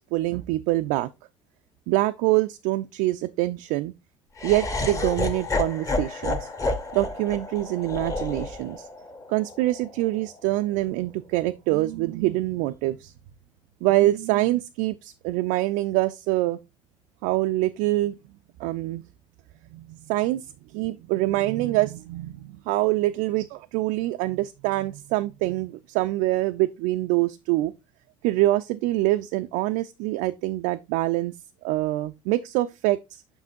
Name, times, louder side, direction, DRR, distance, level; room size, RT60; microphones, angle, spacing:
voice 1, 0.1-1.1 1.9-3.9 4.4-6.5 6.9-8.8 9.3-13.1 13.8-16.6 17.2-18.1 18.6-19.0 19.7-20.4 20.7-27.7 28.2-31.3 31.6-33.2, right 17 dB, 50° right, 0.4 m, -25 dB
Laughter, 4.4-10.5, left 2 dB, 20° left, 1.1 m, -30 dB
7.2 x 5.5 x 2.6 m
figure-of-eight pair, 60°, 17 cm